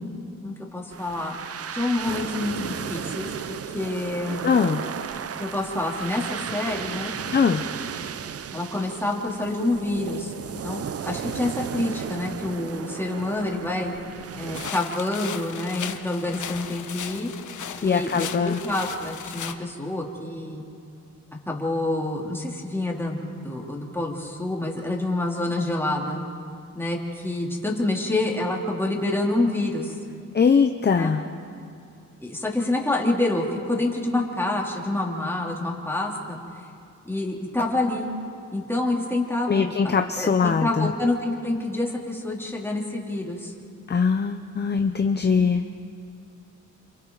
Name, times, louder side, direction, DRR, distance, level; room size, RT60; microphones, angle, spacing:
voice 1, 0.0-1.3 1.7-4.5 5.4-7.2 8.5-10.3 10.6-13.9 14.4-17.3 17.8-20.6 21.5-23.2 23.4-26.2 26.7-29.9 31.0-31.1 32.2-36.4 37.0-38.1 38.5-43.5, left 2 dB, 10° left, -2 dB, 3.4 m, -27 dB
sound 1, 0.9-14.7, right 8 dB, 50° right, 0.7 m, -35 dB
voice 2, 4.4-4.8 7.3-7.6 17.8-18.6 30.3-31.2 39.5-40.9 43.9-45.6, left 5 dB, 35° left, 6 dB, 0.8 m, -21 dB
sound 2, 14.5-19.5, left 8 dB, 75° left, 1.2 m, -36 dB
28.5 x 26.5 x 4.1 m, 2.5 s
cardioid pair, 100°, 30 cm